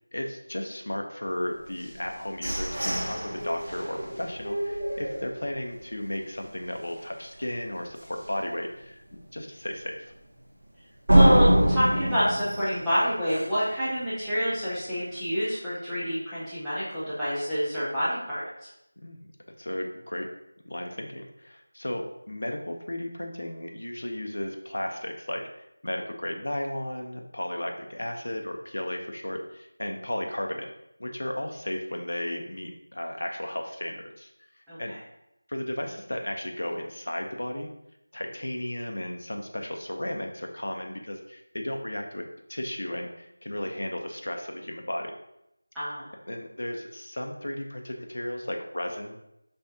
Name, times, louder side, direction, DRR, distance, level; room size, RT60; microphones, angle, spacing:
voice 1, 0.1-10.1 19.0-19.3 19.6-20.3 20.7-25.5 25.8-30.7 31.0-34.3 34.8-34.9 35.5-37.7 38.1-45.1 46.3-49.2, left 1 dB, 55° left, 2 dB, 0.7 m, -34 dB
sound 1, 1.8-5.7 6.1-6.2 6.6-7.0 7.4-7.5 8.0-8.1 11.1-13.7, right 1 dB, 50° right, 1.7 m, -25 dB
voice 2, 11.1-18.4 34.7-35.0 45.7-46.1, equal, ahead, -16 dB, 0.5 m, -27 dB
5.4 x 3.6 x 2.7 m, 0.84 s
figure-of-eight pair, 180°, 0 cm